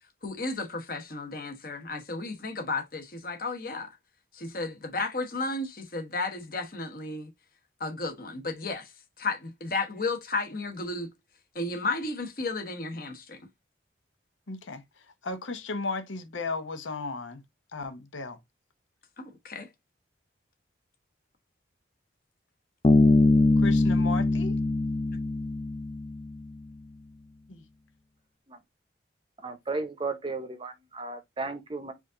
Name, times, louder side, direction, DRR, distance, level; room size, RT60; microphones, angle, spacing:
voice 1, 0.2-3.9 4.3-7.3 7.8-8.9 9.2-11.1 11.5-13.4 19.2-19.7, left 3 dB, 50° left, 1.1 m, -33 dB
voice 2, 14.5-17.4 17.7-18.4 23.6-24.6 27.5-27.6, left 3 dB, 90° left, 0.9 m, -35 dB
Bass guitar, 22.8-26.4, left 2 dB, 30° left, 0.4 m, -22 dB
voice 3, 29.4-31.9, right 3 dB, 25° right, 0.7 m, -34 dB
4.9 x 2.6 x 3.8 m
head